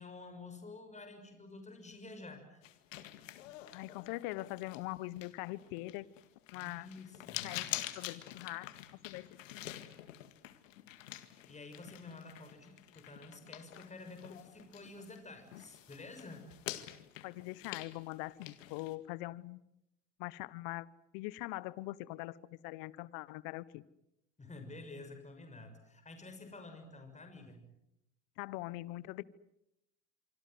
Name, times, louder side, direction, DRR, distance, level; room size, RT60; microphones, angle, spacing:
voice 1, 0.0-2.7 6.5-7.5 11.3-16.5 24.4-27.7, left 3 dB, 20° left, 6 dB, 6.4 m, -50 dB
sound 1, 2.6-15.2 15.5-18.9, left 14 dB, 85° left, 2.1 m, -47 dB
voice 2, 3.7-6.1 6.5-6.9 7.4-9.7 17.2-19.6 20.2-20.9 21.1-23.8 28.4-29.2, left 19 dB, 65° left, 20 dB, 1.2 m, -42 dB
25.5 x 25.5 x 7.9 m, 0.82 s
hypercardioid pair, 85°, 38 cm